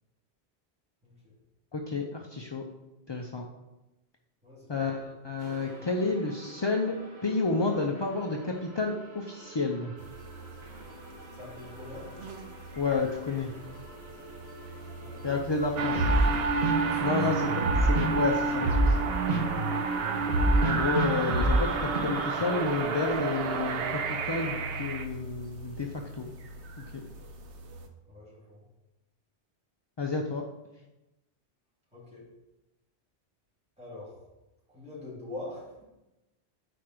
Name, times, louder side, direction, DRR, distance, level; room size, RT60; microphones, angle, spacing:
voice 1, 1.0-1.3 4.4-5.0 11.3-12.1 15.0-15.4 16.8-17.3 28.1-28.6 31.9-32.3 33.8-34.2 34.7-35.8, left 2 dB, 5° right, -7 dB, 2.5 m, -44 dB
voice 2, 1.7-2.6 3.1-3.4 4.7-9.9 12.8-13.5 15.2-16.1 17.0-19.0 20.6-25.9 26.2-26.3 26.9-27.0 30.0-30.4, left 4 dB, 45° left, 1 dB, 0.3 m, -30 dB
sound 1, 5.4-22.0, right 1 dB, 45° right, 1.1 m, -32 dB
sound 2, 10.0-27.9, right 1 dB, 85° right, 1.1 m, -46 dB
sound 3, 15.8-25.0, right 4 dB, 65° right, 0.8 m, -30 dB
5.0 x 4.4 x 5.9 m, 0.98 s
omnidirectional pair, 1.1 m